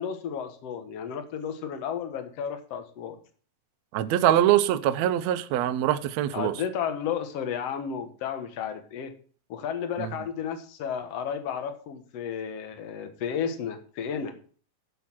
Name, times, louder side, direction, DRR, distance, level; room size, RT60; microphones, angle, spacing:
voice 1, 0.0-3.2 6.3-9.1 9.5-14.3, left 7 dB, 55° left, 2.2 m, -33 dB
voice 2, 3.9-6.6 10.0-10.1, right 12 dB, 75° right, 1.6 m, -23 dB
13.0 x 6.5 x 6.1 m
omnidirectional pair, 3.9 m